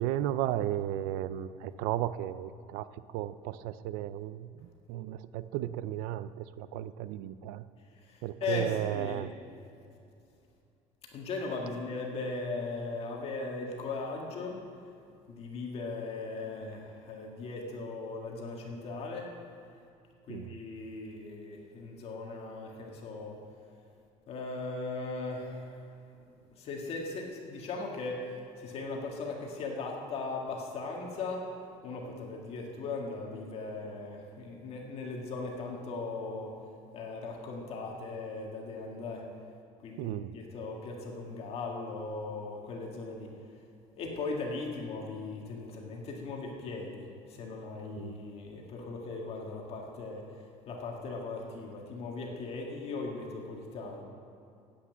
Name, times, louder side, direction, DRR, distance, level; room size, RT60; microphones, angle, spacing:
voice 1, 0.0-7.6 8.2-9.3 20.3-20.6 40.0-40.3 48.0-48.2, right 12 dB, 90° right, 14 dB, 0.5 m, -34 dB
voice 2, 8.0-9.2 11.1-14.6 15.3-19.3 20.3-23.4 24.3-25.8 26.1-26.3 26.6-31.5 31.8-36.5 36.9-39.3 39.8-43.3 44.0-54.0, left 3 dB, 45° left, 0 dB, 1.7 m, -38 dB
10.0 x 8.4 x 8.3 m, 2.6 s
cardioid pair, 155°, 14 cm